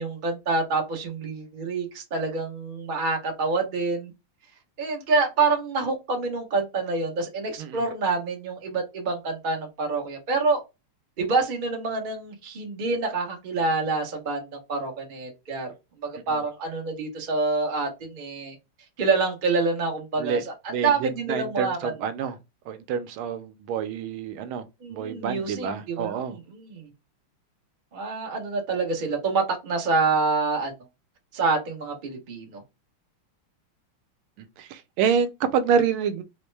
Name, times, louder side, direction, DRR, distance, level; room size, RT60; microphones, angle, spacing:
voice 1, 0.0-4.1 4.8-10.6 11.2-15.7 16.0-18.5 19.0-20.4 20.6-21.9 24.8-26.9 27.9-30.7 31.3-32.6, right 3 dB, 65° right, 0.5 m, -27 dB
voice 2, 20.7-22.4 22.7-24.6 24.9-26.4 34.4-36.2, right 7 dB, 80° right, 1.3 m, -27 dB
4.3 x 2.1 x 3.2 m
omnidirectional pair, 2.4 m